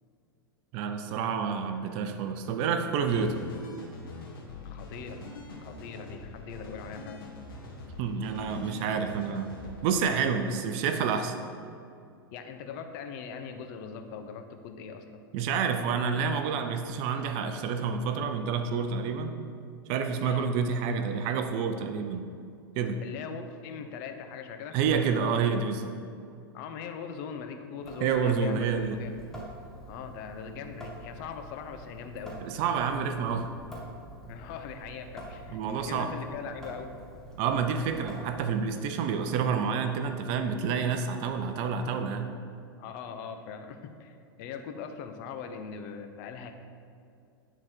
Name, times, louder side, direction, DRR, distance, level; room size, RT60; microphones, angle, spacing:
voice 1, 0.7-3.4 8.0-9.5 9.8-11.4 15.3-19.4 19.9-22.3 22.8-23.0 24.7-26.0 28.0-29.0 32.4-33.5 35.5-36.1 37.4-42.3, right 6 dB, 50° right, 7 dB, 0.6 m, -28 dB
sound 1, 3.1-9.9, left 2 dB, 70° left, 1.5 m, -44 dB
voice 2, 4.6-5.2 5.6-7.2 12.3-15.2 20.2-20.5 23.0-24.8 26.5-28.7 29.0-29.1 29.9-32.4 34.3-36.9 42.8-46.5, left 6 dB, 55° left, 7 dB, 0.8 m, -41 dB
Water tap faucet / Sink (filling or washing) / Drip, 27.8-38.7, equal, 5° left, 1.3 m, -47 dB
9.6 x 4.0 x 4.5 m, 2.5 s
hypercardioid pair, 105°, 12 cm